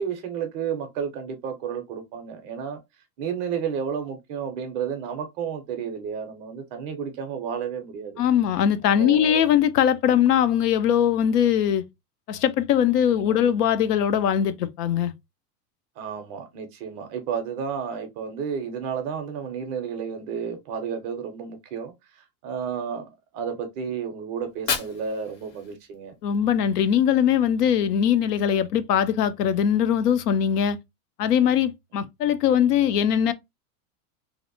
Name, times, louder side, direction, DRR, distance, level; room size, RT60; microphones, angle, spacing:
voice 1, 0.0-2.8 3.2-8.2 9.0-9.5 13.1-13.6 16.0-26.1, right 7 dB, 30° right, 0.4 m, -32 dB
voice 2, 8.2-11.8 12.3-15.1 26.2-30.8 31.2-33.3, left 9 dB, 85° left, 0.6 m, -21 dB
Fire, 24.4-26.4, left 5 dB, 40° left, 0.7 m, -33 dB
2.6 x 2.1 x 2.5 m
supercardioid pair, 140°, 46 cm